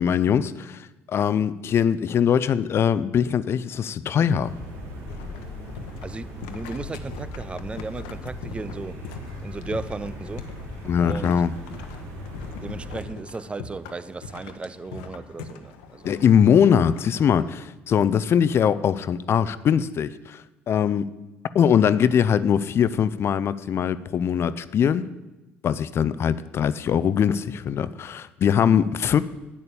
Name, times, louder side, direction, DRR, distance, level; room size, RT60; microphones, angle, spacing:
voice 1, 0.0-4.5 10.8-11.5 16.0-21.1 21.5-25.1 25.6-29.2, left 8 dB, 50° left, 0.5 m, -21 dB
sound 1, 4.4-13.0, left 1 dB, 70° right, 2.7 m, -38 dB
sound 2, 5.1-17.5, left 4 dB, 85° left, 1.0 m, -42 dB
voice 2, 6.0-9.0 9.4-10.5 11.0-11.5 12.6-16.2, right 3 dB, 20° right, 0.5 m, -35 dB
8.6 x 6.8 x 8.5 m
hypercardioid pair, 65°, 6 cm